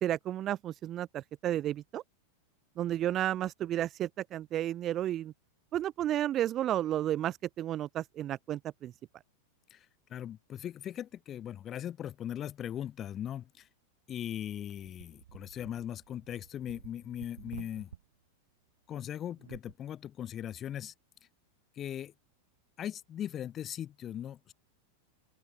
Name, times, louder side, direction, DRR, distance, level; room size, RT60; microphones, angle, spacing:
voice 1, 0.0-2.0 2.8-5.3 5.7-8.9, right 12 dB, 30° right, 1.2 m, -32 dB
voice 2, 9.7-13.7 14.1-17.9 18.9-20.9 21.7-22.1 22.8-24.5, left 10 dB, 30° left, 3.0 m, -39 dB
sound 1, 14.8-18.0 19.3-19.7, right 9 dB, 65° right, 1.7 m, -51 dB
open air
figure-of-eight pair, 90°, 0 cm